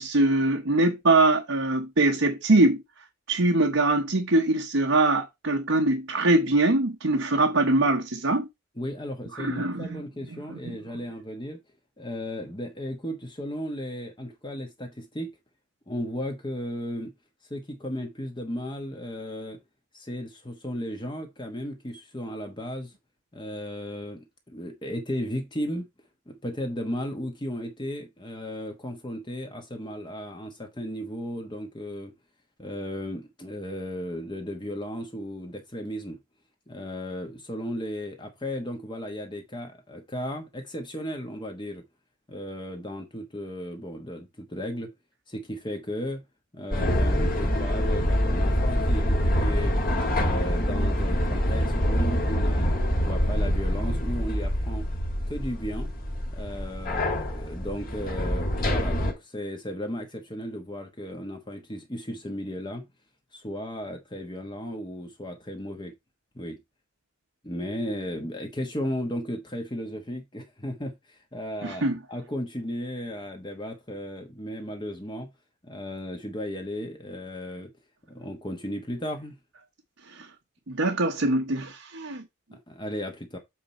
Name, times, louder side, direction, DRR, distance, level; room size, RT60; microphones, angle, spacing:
voice 1, 0.0-2.8 3.3-8.5 9.3-10.0 10.3-10.7 71.6-72.0 80.1-80.3 80.7-82.2, right 2 dB, 65° right, 1.0 m, -23 dB
voice 2, 8.8-11.6 12.0-15.3 15.9-17.1 17.5-19.6 19.9-22.9 23.3-25.9 26.3-32.1 32.6-36.2 36.7-41.8 42.3-44.9 45.3-46.2 46.5-49.7 50.1-54.9 55.3-55.9 56.3-62.9 63.3-65.9 66.3-66.6 67.4-75.3 75.6-77.7 78.1-79.4 82.5-83.4, equal, 20° left, 1.1 m, -35 dB
sound 1, 46.7-59.1, equal, 40° left, 2.1 m, -25 dB
7.5 x 4.2 x 4.3 m
head